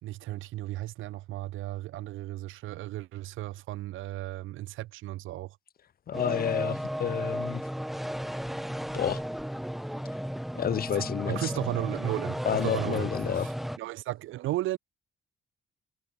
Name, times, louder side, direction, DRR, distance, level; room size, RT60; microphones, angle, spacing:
voice 1, 0.0-5.6 10.9-13.1 13.3-13.5 13.8-14.8, right 16 dB, 85° right, 1.2 m, -35 dB
voice 2, 6.1-7.6 8.9-9.2 10.6-11.5 12.5-13.5, left 9 dB, 50° left, 0.8 m, -30 dB
sound 1, 6.1-13.8, equal, ahead, 0.4 m, -34 dB
cardioid pair, 90°, 20 cm